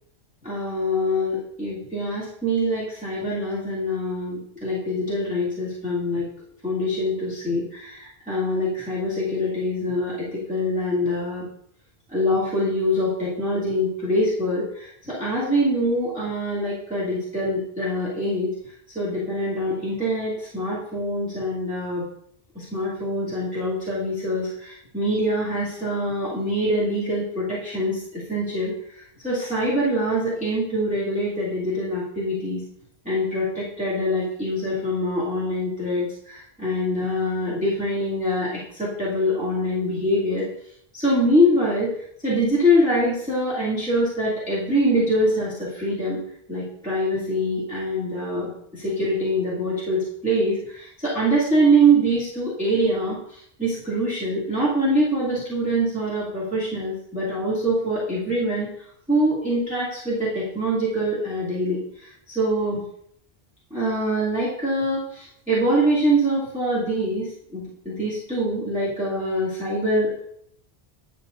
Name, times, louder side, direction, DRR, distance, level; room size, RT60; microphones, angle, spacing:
voice 1, 0.4-6.3 6.6-11.5 12.1-18.5 18.9-22.0 22.5-28.7 29.2-32.6 33.0-40.5 40.9-41.9 42.2-46.2 46.5-58.7 59.1-61.8 62.3-62.8 63.7-67.3 67.5-70.2, equal, 5° right, -9 dB, 2.4 m, -24 dB
10.5 x 6.1 x 2.6 m, 0.68 s
omnidirectional pair, 1.0 m